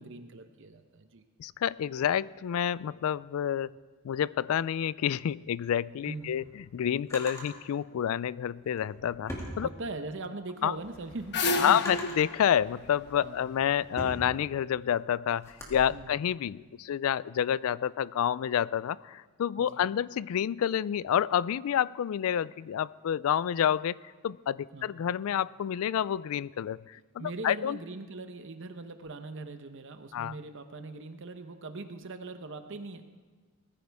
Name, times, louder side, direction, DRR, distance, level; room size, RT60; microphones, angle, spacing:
voice 1, 0.0-1.2 6.0-6.4 9.6-12.0 13.2-13.4 15.9-16.1 19.6-19.9 24.7-24.9 27.2-33.0, right 3 dB, 60° right, 7 dB, 0.8 m, -41 dB
voice 2, 1.4-3.7 4.0-9.7 10.6-10.8 11.6-27.8 30.1-30.4, left 9 dB, 70° left, 20 dB, 0.3 m, -29 dB
Drawer open or close, 5.9-7.5 8.6-10.2 10.7-12.4 13.0-15.8, equal, 15° left, 2.3 m, -43 dB
sound 1, 10.8-14.0, left 3 dB, 50° left, 1.1 m, -32 dB
20.0 x 14.5 x 3.5 m, 1.4 s
head